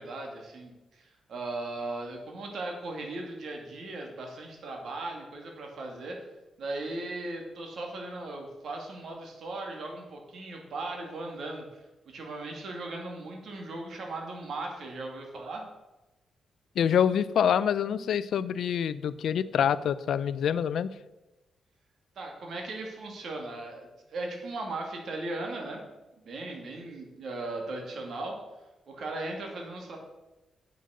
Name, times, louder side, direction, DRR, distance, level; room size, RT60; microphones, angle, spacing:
voice 1, 0.0-6.2 6.6-15.7 22.2-25.8 26.2-28.4 28.9-30.0, right 2 dB, 70° right, 1 dB, 2.5 m, -38 dB
voice 2, 16.8-20.9, left 8 dB, 75° left, 16 dB, 0.4 m, -26 dB
7.9 x 6.5 x 6.5 m, 1.0 s
cardioid pair, 70°, 0 cm